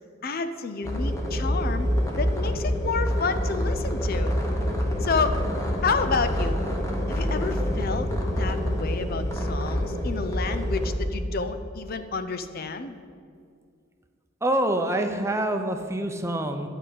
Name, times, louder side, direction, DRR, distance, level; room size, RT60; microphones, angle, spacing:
voice 1, 0.2-1.9 2.2-4.4 5.0-5.4 5.8-6.6 7.1-13.0, left 4 dB, 50° left, 10 dB, 0.5 m, -30 dB
sound 1, 0.8-11.0, equal, 15° left, 1.4 m, -26 dB
voice 2, 14.4-16.7, right 1 dB, 15° right, 5 dB, 0.7 m, -26 dB
11.5 x 5.0 x 8.4 m, 2.2 s
head